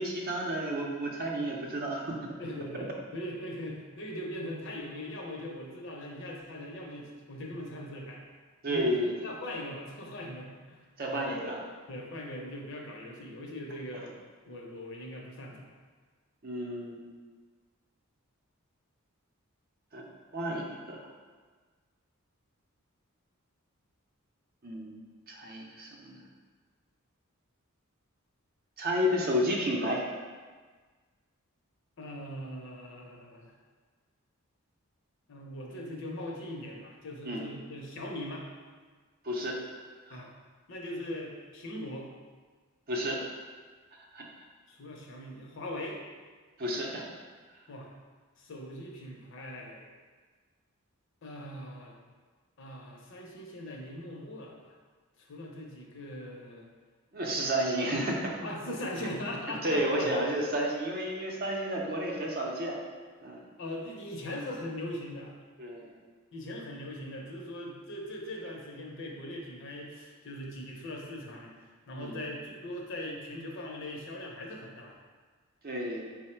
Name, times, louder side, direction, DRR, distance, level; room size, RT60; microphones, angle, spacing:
voice 1, 0.0-2.3 8.6-9.2 11.0-11.7 16.4-17.0 19.9-20.0 20.3-21.0 24.6-25.0 25.3-26.2 28.8-30.0 37.2-37.4 39.2-39.6 40.1-40.2 42.9-43.2 44.1-44.3 46.6-47.1 57.1-58.3 59.0-59.1 59.6-62.8 63.2-63.4 65.6-65.9 72.0-72.2 75.6-76.0, equal, 45° right, -1 dB, 0.6 m, -31 dB
voice 2, 2.4-8.2 8.7-10.8 11.1-11.2 11.9-14.1 14.5-15.7 32.0-33.5 35.3-38.5 40.1-40.3 40.7-42.1 44.7-46.0 47.7-47.9 48.4-49.9 51.2-52.0 52.6-54.7 55.2-56.7 58.4-60.1 63.6-65.3 66.3-71.5 71.9-75.0, left 1 dB, 60° left, 0 dB, 0.6 m, -40 dB
4.5 x 2.1 x 4.3 m, 1.4 s
head